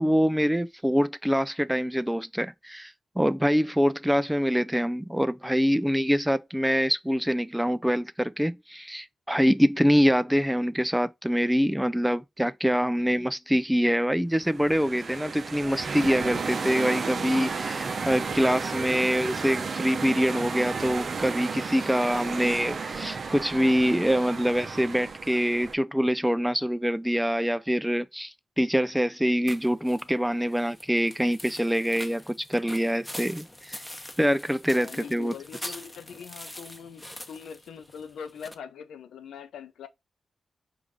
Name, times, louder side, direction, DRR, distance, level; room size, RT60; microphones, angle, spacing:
voice 1, 0.0-33.8 34.2-35.3 35.6-35.7, equal, 5° right, 0.4 m, -25 dB
sound 1, 14.4-25.7, right 4 dB, 60° right, 0.6 m, -33 dB
sound 2, 29.5-38.5, left 1 dB, 10° left, 1.0 m, -43 dB
voice 2, 34.7-39.9, left 7 dB, 85° left, 0.5 m, -42 dB
4.7 x 2.5 x 3.7 m
supercardioid pair, 40°, 0 cm